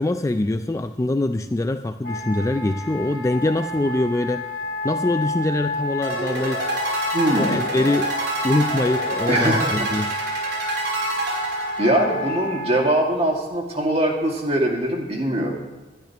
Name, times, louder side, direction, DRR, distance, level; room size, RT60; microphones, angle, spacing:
voice 1, 0.0-4.5 4.8-6.7 7.4-10.1, left 2 dB, 15° left, 8 dB, 0.3 m, -23 dB
Wind instrument woodwind instrument, 2.0-12.8, left 1 dB, 55° left, 3.9 m, -30 dB
sound 1, 6.0-12.3, right 2 dB, 65° right, 3.7 m, -28 dB
voice 2, 7.1-7.6 9.3-9.8 11.8-15.5, right 1 dB, 35° right, 0 dB, 2.1 m, -22 dB
20.5 x 12.0 x 3.0 m, 1.2 s
head